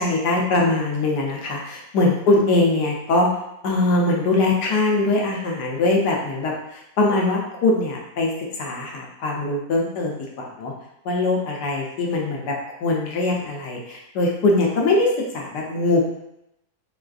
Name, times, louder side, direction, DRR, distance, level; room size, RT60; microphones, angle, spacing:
voice 1, 0.0-3.3 3.6-8.3 8.6-10.7 11.0-12.5 12.8-16.1, left 2 dB, 85° left, -1 dB, 1.3 m, -22 dB
4.2 x 2.4 x 2.4 m, 0.83 s
omnidirectional pair, 1.7 m